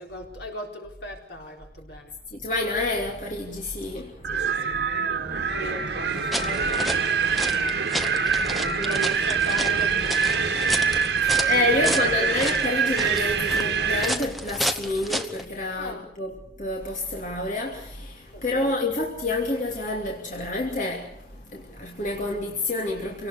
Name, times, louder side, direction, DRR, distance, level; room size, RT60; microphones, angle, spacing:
voice 1, 0.0-2.1 4.3-12.6 15.8-16.1 18.3-19.0, left 1 dB, 65° left, 4.1 m, -39 dB
voice 2, 2.3-4.3 8.8-9.1 11.2-23.3, left 2 dB, 45° left, 2.9 m, -28 dB
Wind, 4.2-14.2, right 6 dB, 80° right, 1.8 m, -25 dB
sound 1, 6.1-15.4, equal, ahead, 1.0 m, -32 dB
26.5 x 18.5 x 6.7 m
head